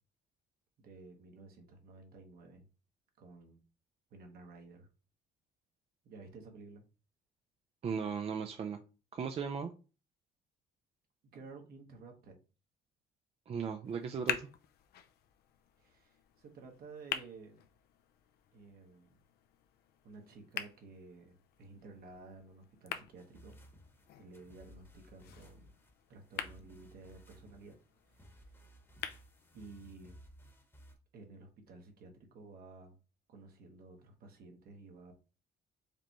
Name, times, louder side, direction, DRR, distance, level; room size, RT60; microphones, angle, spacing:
voice 1, 0.8-2.6 3.2-3.6 4.1-4.9 6.0-6.8 11.3-12.4 15.8-17.6 18.5-19.2 20.0-23.6 24.2-25.7 26.1-27.8 28.1-28.6 29.5-30.2 31.1-32.9 33.3-35.1, right 3 dB, 65° right, 4 dB, 1.3 m, -53 dB
voice 2, 7.8-8.8 9.1-9.7 13.5-14.5, right 6 dB, 35° right, 5 dB, 0.5 m, -37 dB
sound 1, 13.8-29.8, left 9 dB, 70° left, 0.5 m, -46 dB
sound 2, 23.2-30.9, equal, 15° left, 1.1 m, -58 dB
5.0 x 3.4 x 3.0 m, 0.33 s
cardioid pair, 110°, 17 cm